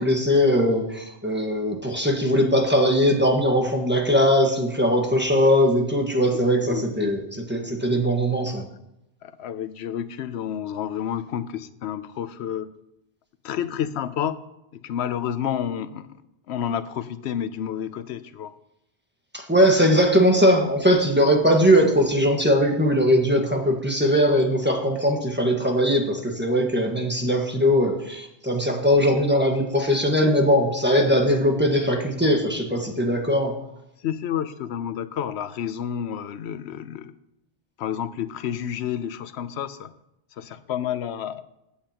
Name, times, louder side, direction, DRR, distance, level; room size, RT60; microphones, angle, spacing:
voice 1, 0.0-8.7 19.3-33.5, equal, 10° right, 2 dB, 1.5 m, -20 dB
voice 2, 6.6-7.1 9.2-12.7 13.4-14.4 14.7-16.1 16.5-18.5 34.0-37.1 37.8-39.9 40.4-41.4, left 9 dB, 85° left, 13 dB, 0.9 m, -30 dB
15.5 x 8.6 x 2.9 m, 0.86 s
omnidirectional pair, 1.1 m